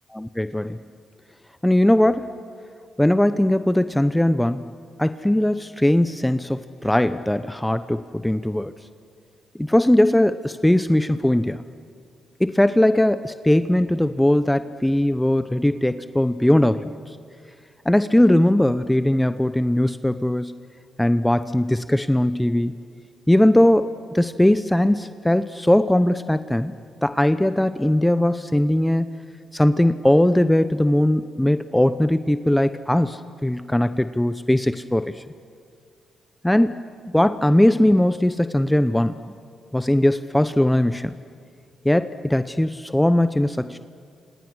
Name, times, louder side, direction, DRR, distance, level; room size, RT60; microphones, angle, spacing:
voice 1, 0.1-0.8 1.6-2.3 3.0-4.6 5.0-8.7 9.6-11.6 12.4-16.9 17.8-20.5 21.0-22.8 23.3-26.7 27.0-29.1 29.5-35.2 36.4-36.8 37.1-39.1 39.7-41.1 41.8-43.8, left 1 dB, 10° left, 12 dB, 0.8 m, -19 dB
27.5 x 26.5 x 6.4 m, 2.2 s
supercardioid pair, 60°, 0 cm